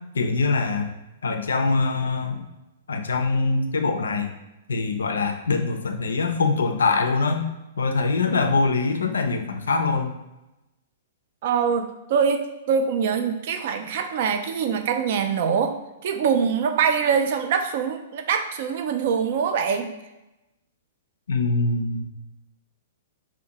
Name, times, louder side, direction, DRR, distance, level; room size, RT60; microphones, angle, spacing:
voice 1, 0.1-0.9 1.2-2.4 2.9-4.3 4.7-7.5 7.8-10.1 21.3-22.0, left 3 dB, 75° left, 5 dB, 0.3 m, -23 dB
voice 2, 11.4-19.9, right 6 dB, 55° right, 6 dB, 0.3 m, -24 dB
2.5 x 2.1 x 2.8 m, 0.98 s
figure-of-eight pair, 110°, 0 cm